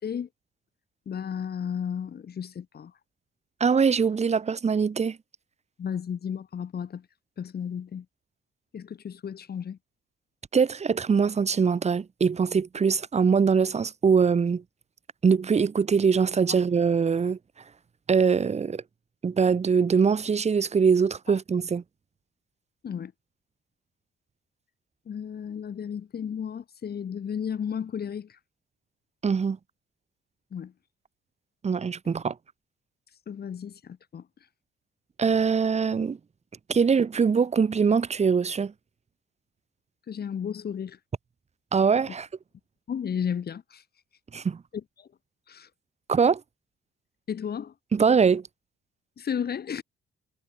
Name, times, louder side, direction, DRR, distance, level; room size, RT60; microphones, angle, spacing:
voice 1, 1.1-2.9 5.8-7.0 7.4-8.1 8.7-9.8 21.3-21.4 22.8-23.1 25.1-28.4 30.5-30.7 33.3-34.2 40.1-41.0 42.9-43.8 44.7-45.1 45.5-45.7 47.3-47.7 49.2-49.8, left 7 dB, 50° left, 5.7 m, -33 dB
voice 2, 3.6-5.2 10.5-14.6 15.2-17.4 18.1-18.8 19.2-21.8 29.2-29.6 31.6-32.3 35.2-36.2 36.7-38.7 41.7-42.3 44.3-44.6 46.1-46.4 47.9-48.4, right 6 dB, 35° right, 1.2 m, -22 dB
cardioid pair, 90°, 20 cm